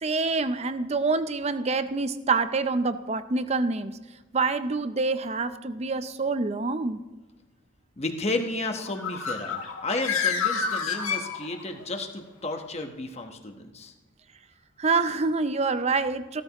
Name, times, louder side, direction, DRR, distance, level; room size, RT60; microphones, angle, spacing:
voice 1, 0.0-3.9 4.3-7.0 14.8-16.4, right 3 dB, 30° right, 12 dB, 0.5 m, -26 dB
voice 2, 8.0-13.9, left 2 dB, 30° left, 4 dB, 1.1 m, -32 dB
Bird, 8.8-11.8, left 6 dB, 85° left, 1.6 m, -29 dB
16.0 x 13.0 x 3.0 m, 1.2 s
head